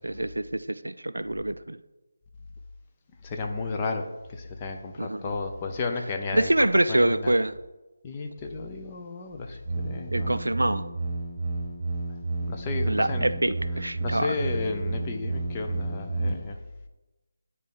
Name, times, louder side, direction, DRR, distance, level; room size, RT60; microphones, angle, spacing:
voice 1, 0.0-1.8 5.0-5.3 6.3-7.5 10.1-10.8 12.9-14.4, right 1 dB, 80° right, 13 dB, 0.4 m, -25 dB
voice 2, 3.2-7.3 8.0-10.3 12.4-13.5 14.0-16.6, left 3 dB, 20° left, 4 dB, 0.6 m, -33 dB
sound 1, 9.7-16.3, right 2 dB, 40° right, 1.0 m, -31 dB
9.5 x 4.1 x 3.9 m, 1.1 s
figure-of-eight pair, 160°, 0 cm